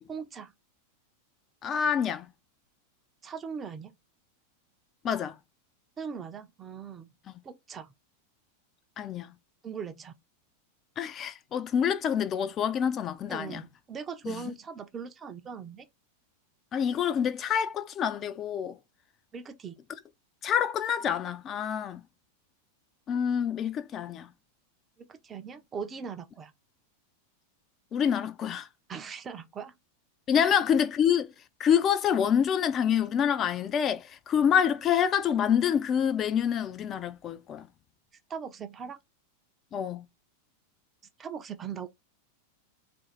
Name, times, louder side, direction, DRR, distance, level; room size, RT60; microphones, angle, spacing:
voice 1, 0.1-0.5 3.2-3.9 6.0-7.1 7.4-7.9 9.6-10.1 13.3-15.9 19.3-19.8 25.0-26.5 28.9-29.7 30.4-30.6 38.3-39.0 41.2-41.9, right 6 dB, 20° right, 0.5 m, -40 dB
voice 2, 1.6-2.3 5.0-5.3 9.0-9.3 11.0-13.6 14.2-14.4 16.7-18.8 20.4-22.0 23.1-24.3 27.9-28.7 30.3-31.3 31.6-37.7 39.7-40.1, left 8 dB, 30° left, 0.4 m, -27 dB
3.8 x 2.5 x 4.4 m
figure-of-eight pair, 90°, 0 cm